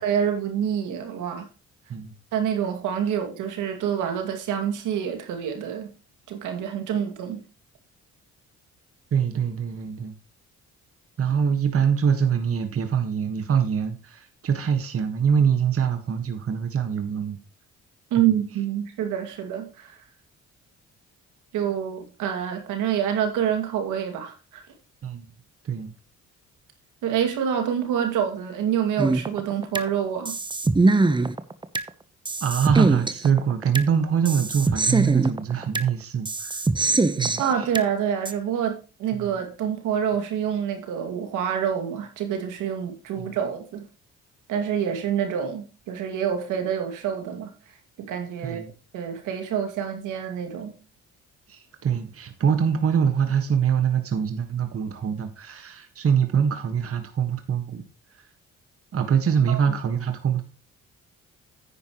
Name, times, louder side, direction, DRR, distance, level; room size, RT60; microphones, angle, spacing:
voice 1, 0.0-1.5 2.3-5.9 6.3-7.4 18.1-20.0 21.5-24.6 27.0-30.4 37.4-43.8 44.5-47.5 48.0-48.6 48.9-50.8 59.5-59.6, right 8 dB, 90° right, 2.4 m, -27 dB
voice 2, 9.1-10.1 11.2-17.4 18.2-18.4 25.0-25.3 25.6-25.9 32.4-36.6 37.2-37.7 39.1-39.3 43.2-43.4 48.4-48.7 51.5-57.8 58.1-58.2 58.9-60.4, right 7 dB, 50° right, 1.6 m, -24 dB
sound 1, 29.0-29.9 30.2-31.9 32.2-33.9 34.2-35.9 36.2-37.9 38.2-38.3, right 3 dB, 15° right, 1.0 m, -23 dB
9.9 x 9.5 x 3.1 m
cardioid pair, 90°, 30 cm